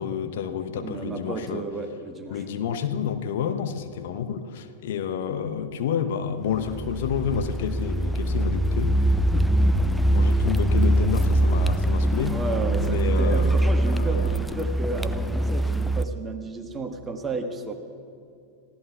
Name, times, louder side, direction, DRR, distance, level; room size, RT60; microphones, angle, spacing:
voice 1, 0.0-1.7 2.3-9.0 9.6-12.4 12.7-14.4, left 8 dB, 55° left, 7 dB, 0.8 m, -30 dB
voice 2, 0.7-2.4 9.3-10.4 12.3-17.7, right 3 dB, 20° right, 5 dB, 1.4 m, -33 dB
Car, 6.6-16.1, right 1 dB, ahead, 0.4 m, -23 dB
30.0 x 16.0 x 2.3 m, 2.4 s
figure-of-eight pair, 90°, 0 cm